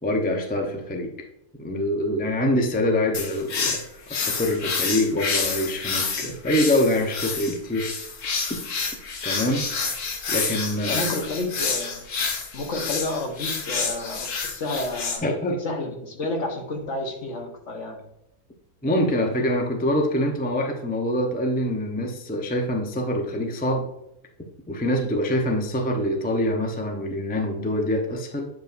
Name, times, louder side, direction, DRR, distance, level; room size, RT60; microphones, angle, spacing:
voice 1, 0.0-1.1 1.6-3.8 4.1-7.9 8.5-8.6 9.2-9.7 10.3-11.0 15.2-15.6 18.8-23.9 24.7-28.5, left 1 dB, 10° left, 2 dB, 0.5 m, -25 dB
sound 1, 3.1-15.2, left 5 dB, 85° left, 1.6 m, -28 dB
voice 2, 10.9-12.0 12.5-15.2 15.6-18.0, left 2 dB, 55° left, 3 dB, 1.4 m, -30 dB
8.9 x 5.3 x 2.6 m, 0.84 s
omnidirectional pair, 1.5 m